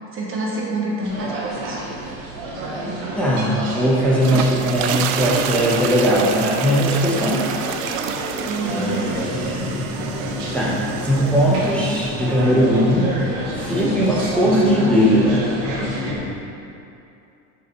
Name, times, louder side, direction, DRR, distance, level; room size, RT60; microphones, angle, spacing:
voice 1, 0.1-1.8 8.4-9.0, right 2 dB, 35° right, -3 dB, 1.3 m, -26 dB
sound 1, 1.0-16.1, right 2 dB, 55° right, 1.6 m, -31 dB
voice 2, 3.2-7.4 8.7-10.0 10.5-13.1 13.5-15.5, equal, 5° left, -8 dB, 1.2 m, -19 dB
sound 2, 4.0-12.4, right 9 dB, 85° right, 0.5 m, -29 dB
sound 3, 9.1-16.4, left 2 dB, 30° left, 1.1 m, -30 dB
8.8 x 5.4 x 3.2 m, 2.6 s
cardioid pair, 135°, 37 cm